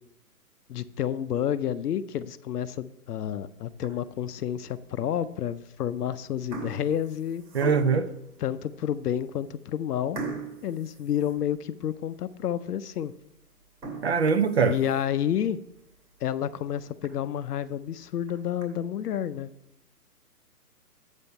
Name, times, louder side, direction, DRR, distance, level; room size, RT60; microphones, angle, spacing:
voice 1, 0.7-7.4 8.4-10.2 10.6-13.1 14.7-15.6 16.2-19.5, left 10 dB, 75° left, 13 dB, 0.6 m, -30 dB
sound 1, 3.7-4.2 4.8-4.9 5.8-6.0 6.3-8.2 8.8-8.9 9.2-9.3 10.1-11.9 12.3-12.4 12.9-13.0 13.6-15.2 15.7-15.8 16.2-16.3 16.6-16.7 17.0-17.1 18.0-18.6, right 4 dB, 85° right, 2.8 m, -39 dB
voice 2, 7.5-8.1 14.0-14.8, right 5 dB, 45° right, 12 dB, 0.5 m, -22 dB
8.3 x 5.2 x 5.5 m, 0.81 s
hypercardioid pair, 160°, 47 cm